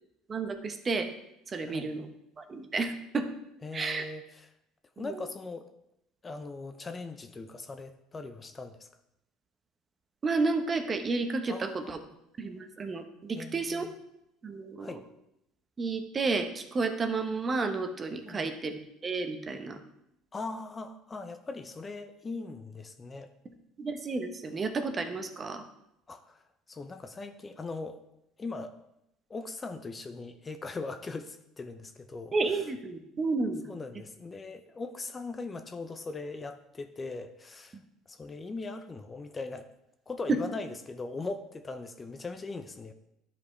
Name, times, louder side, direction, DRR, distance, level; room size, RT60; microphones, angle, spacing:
voice 1, 0.3-1.1 1.5-2.1 2.4-3.3 3.7-4.1 5.0-5.3 10.2-12.0 12.4-13.9 14.4-15.0 15.8-18.7 19.0-19.8 23.8-25.6 32.3-33.6 40.3-40.4, right 3 dB, 30° right, 7 dB, 0.9 m, -31 dB
voice 2, 3.6-4.5 5.0-5.7 6.2-8.9 11.5-12.0 13.3-13.9 14.8-15.0 18.2-18.5 20.3-23.3 26.1-28.0 28.4-28.8 29.3-32.6 33.7-37.8 38.1-39.7 40.1-42.9, left 3 dB, 25° left, 8 dB, 0.6 m, -40 dB
11.0 x 5.1 x 3.2 m, 0.82 s
supercardioid pair, 100°, 0 cm